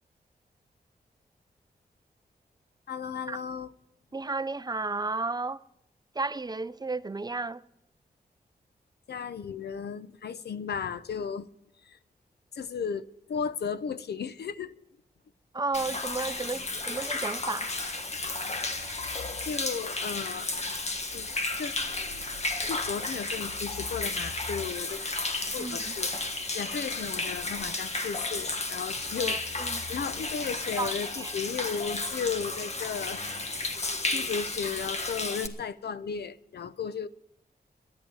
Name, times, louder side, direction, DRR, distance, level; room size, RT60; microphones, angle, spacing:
voice 1, 2.9-3.7 9.1-11.5 11.9-12.0 12.5-14.7 19.4-20.5 21.1-21.3 21.6-21.8 22.7-25.0 25.5-26.1 26.5-33.2 34.1-37.1, left 6 dB, 80° left, 0.8 m, -35 dB
voice 2, 4.1-5.6 6.1-7.6 15.5-17.7 25.6-25.9 29.2-29.9 30.8-31.3, right 3 dB, 25° right, 0.5 m, -33 dB
Human voice / Rain / Stream, 15.7-35.5, left 2 dB, 40° left, 1.6 m, -33 dB
13.5 x 10.5 x 9.0 m
wide cardioid pair, 95°, 17 cm